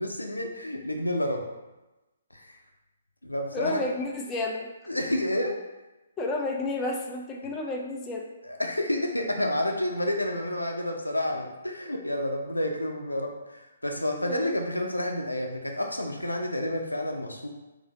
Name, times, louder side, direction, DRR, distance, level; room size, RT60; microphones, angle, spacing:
voice 1, 0.0-1.5 2.3-2.6 3.2-3.8 4.9-5.6 8.4-17.5, left 1 dB, 85° left, 2 dB, 0.6 m, -30 dB
voice 2, 3.5-4.7 6.2-8.3 14.2-14.6, left 2 dB, 15° left, -1 dB, 0.5 m, -31 dB
4.0 x 2.7 x 3.9 m, 1.1 s
figure-of-eight pair, 130°, 0 cm